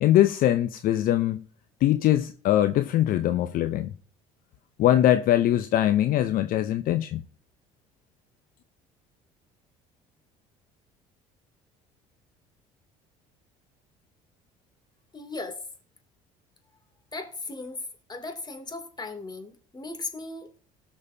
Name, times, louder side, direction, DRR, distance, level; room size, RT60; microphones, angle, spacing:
voice 1, 0.0-1.4 1.8-3.9 4.8-7.2, left 12 dB, 60° left, 0.7 m, -22 dB
voice 2, 15.1-15.6 17.1-17.8 18.1-20.5, left 3 dB, 25° left, 2.7 m, -37 dB
18.0 x 6.3 x 2.8 m
hypercardioid pair, 70°, 17 cm